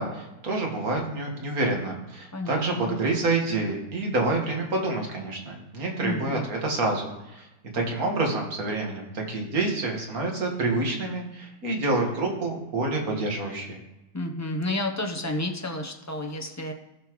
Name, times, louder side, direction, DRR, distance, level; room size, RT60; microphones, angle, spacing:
voice 1, 0.0-7.5 7.7-13.8, right 2 dB, 70° right, 1 dB, 2.1 m, -28 dB
voice 2, 2.3-3.0 6.0-6.4 14.1-16.7, left 1 dB, 15° left, 2 dB, 0.6 m, -31 dB
15.5 x 5.6 x 3.1 m, 0.98 s
omnidirectional pair, 1.6 m